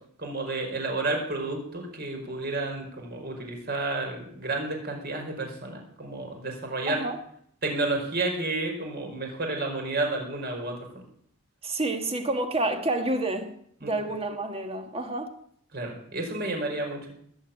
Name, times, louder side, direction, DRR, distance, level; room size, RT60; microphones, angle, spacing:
voice 1, 0.2-7.0 7.6-10.8 13.8-13.9 15.7-17.1, right 2 dB, 45° right, 5.0 m, -31 dB
voice 2, 6.9-7.2 11.6-13.5 13.8-15.3, right 2 dB, 25° right, 1.8 m, -29 dB
20.0 x 8.1 x 8.8 m
head